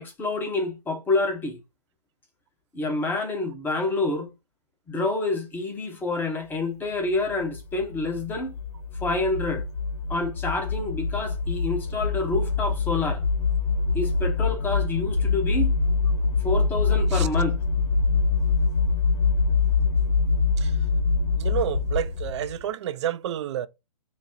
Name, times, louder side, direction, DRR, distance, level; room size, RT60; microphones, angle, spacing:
voice 1, 0.0-1.6 2.7-4.3 4.9-8.5 9.0-9.6 10.1-13.2 13.9-15.7 16.4-17.6, left 2 dB, 10° left, 0.7 m, -27 dB
sound 1, 7.3-22.6, left 4 dB, 65° left, 0.8 m, -24 dB
voice 2, 21.4-23.7, right 10 dB, 45° right, 0.4 m, -29 dB
4.0 x 2.0 x 3.7 m
hypercardioid pair, 135°, 20 cm